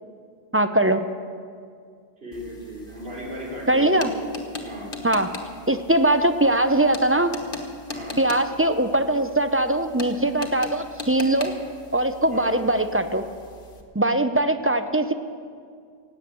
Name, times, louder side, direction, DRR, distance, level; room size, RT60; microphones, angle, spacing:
voice 1, 0.5-1.1 3.7-4.1 5.0-5.3 5.7-7.3 8.2-11.5 11.9-13.2 13.9-15.1, right 1 dB, 15° right, 9 dB, 0.5 m, -21 dB
voice 2, 2.2-4.2 4.6-4.9 7.9-8.2 12.3-12.5, equal, 75° right, -5 dB, 3.8 m, -36 dB
sound 1, 2.3-13.8, left 2 dB, 60° left, 1.6 m, -39 dB
16.5 x 9.0 x 8.4 m, 2.2 s
omnidirectional pair, 1.0 m